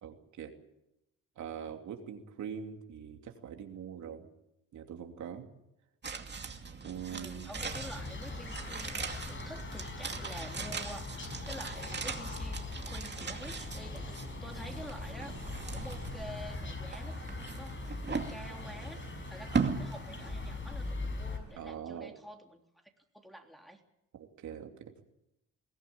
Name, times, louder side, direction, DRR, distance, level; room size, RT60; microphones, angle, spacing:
voice 1, 0.0-0.5 1.4-4.3 4.7-5.5 6.8-7.5 21.5-22.1 24.4-24.9, right 8 dB, 70° right, 4 dB, 3.0 m, -43 dB
sound 1, 6.0-21.2 21.5-21.6, right 5 dB, 35° right, 2.5 m, -40 dB
voice 2, 7.1-15.3 15.7-22.6 23.1-23.8, equal, ahead, 2 dB, 3.4 m, -48 dB
sound 2, 7.6-21.4, left 3 dB, 40° left, 6.1 m, -41 dB
22.0 x 17.0 x 8.7 m, 0.85 s
cardioid pair, 90°, 30 cm